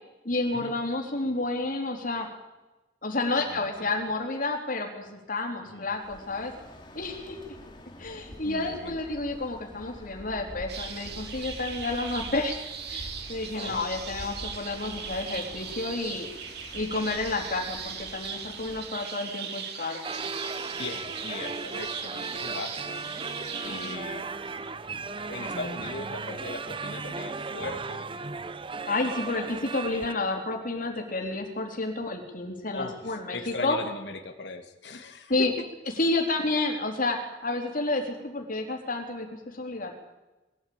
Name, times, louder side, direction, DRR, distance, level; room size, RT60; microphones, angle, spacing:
voice 1, 0.2-2.3 3.0-6.5 6.9-7.6 8.0-12.6 12.9-16.3 16.7-20.0 23.7-24.0 28.9-33.8 35.3-35.5 36.0-37.2 37.4-39.9, left 2 dB, 50° left, 2 dB, 3.8 m, -30 dB
voice 2, 3.2-3.9 5.6-5.9 8.4-9.0 13.5-13.9 20.8-23.1 23.6-24.3 25.3-28.1 29.0-29.3 32.7-35.6, left 3 dB, 70° left, 5 dB, 1.9 m, -39 dB
Bird, 5.9-19.0, equal, 25° left, 2.9 m, -46 dB
sound 1, 10.7-23.9, right 6 dB, 65° right, 2.5 m, -39 dB
sound 2, 20.0-30.1, right 4 dB, 30° right, 0.8 m, -36 dB
22.0 x 14.0 x 8.8 m, 1.1 s
head